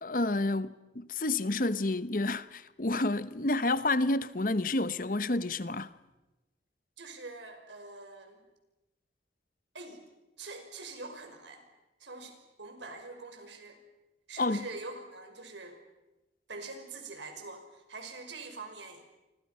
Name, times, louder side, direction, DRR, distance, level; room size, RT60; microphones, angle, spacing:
voice 1, 0.0-5.9 14.4-14.7, left 2 dB, 50° left, 1.0 m, -29 dB
voice 2, 7.0-8.4 9.7-10.0 10.4-11.6 12.0-13.8 14.3-15.8 16.5-19.0, right 3 dB, 85° right, 5.3 m, -44 dB
30.0 x 25.5 x 5.7 m
head